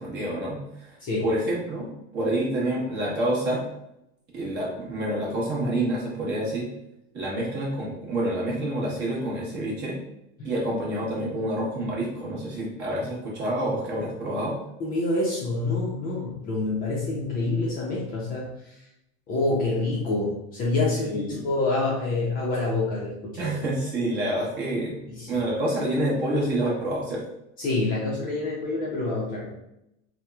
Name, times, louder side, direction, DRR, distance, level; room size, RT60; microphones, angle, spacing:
voice 1, 0.0-0.9 1.2-1.9 2.1-3.6 4.3-6.7 7.1-10.0 10.4-14.5 21.1-21.4 23.4-25.0 25.3-27.2, right 1 dB, 30° right, -4 dB, 0.9 m, -28 dB
voice 2, 14.8-18.5 19.3-23.6 25.1-25.5 27.6-29.5, left 2 dB, 25° left, -4 dB, 0.4 m, -27 dB
2.9 x 2.0 x 2.2 m, 0.84 s
supercardioid pair, 150°, 34 cm